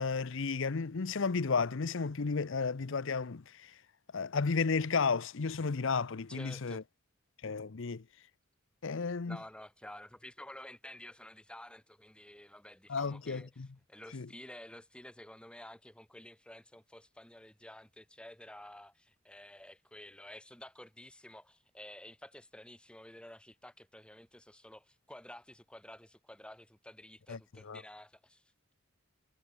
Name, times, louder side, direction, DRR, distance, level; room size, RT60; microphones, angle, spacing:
voice 1, 0.0-3.8 4.1-6.8 7.4-8.0 8.8-9.4 12.9-13.7 14.1-14.3 27.3-27.8, left 4 dB, 65° left, 0.7 m, -33 dB
voice 2, 6.3-6.8 9.3-13.5 13.9-28.4, left 1 dB, 5° left, 1.6 m, -51 dB
head